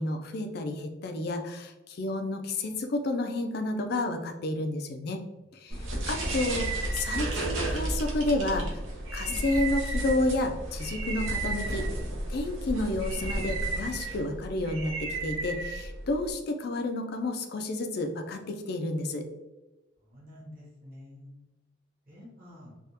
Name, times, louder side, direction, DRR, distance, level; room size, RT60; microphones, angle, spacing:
voice 1, 0.0-5.2 5.5-8.8 9.1-11.9 12.3-19.2, left 2 dB, 55° left, 5 dB, 0.4 m, -31 dB
sound 1, 5.7-16.3, right 2 dB, 85° right, 0.9 m, -32 dB
voice 2, 20.1-21.4 22.1-22.7, left 1 dB, 45° right, -6 dB, 1.3 m, -49 dB
3.5 x 2.3 x 2.7 m, 1.1 s
head